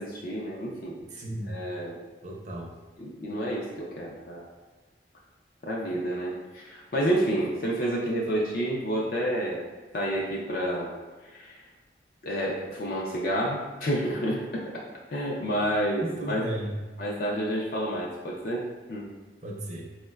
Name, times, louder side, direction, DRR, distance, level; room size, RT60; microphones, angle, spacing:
voice 1, 0.0-1.0 1.5-2.0 3.0-4.5 5.6-9.7 9.9-10.9 11.2-11.6 12.2-14.8 15.1-16.4 17.0-19.1, right 1 dB, 50° left, -3 dB, 0.4 m, -29 dB
voice 2, 1.1-1.6 2.2-2.7 16.0-16.7 19.4-19.9, right 1 dB, 40° right, -1 dB, 0.5 m, -35 dB
4.3 x 2.1 x 2.2 m, 1.3 s
head